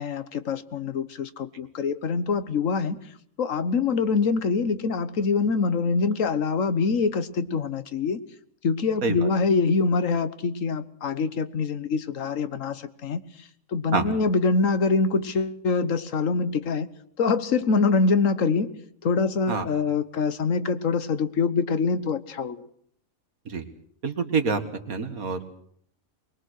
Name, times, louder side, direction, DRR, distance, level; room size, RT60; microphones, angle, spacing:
voice 1, 0.0-3.0 3.4-8.2 8.6-13.2 13.7-16.9 17.2-18.7 19.0-22.6, left 4 dB, 65° left, 12 dB, 1.6 m, -24 dB
voice 2, 24.0-25.4, right 4 dB, 80° right, 8 dB, 2.3 m, -26 dB
24.0 x 21.5 x 6.4 m, 0.65 s
omnidirectional pair, 1.5 m